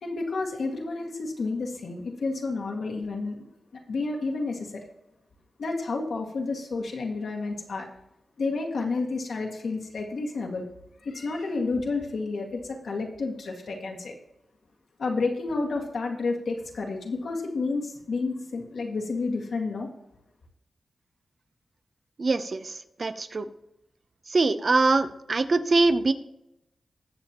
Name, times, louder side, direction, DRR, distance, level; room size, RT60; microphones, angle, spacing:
voice 1, 0.0-3.5 3.9-4.8 5.6-7.9 8.4-10.7 11.0-14.1 15.0-19.9, left 3 dB, 85° left, 0 dB, 2.0 m, -30 dB
voice 2, 22.2-23.5 24.3-26.1, right 3 dB, 55° right, 10 dB, 0.8 m, -23 dB
20.0 x 7.2 x 3.0 m, 0.86 s
cardioid pair, 65°, 0 cm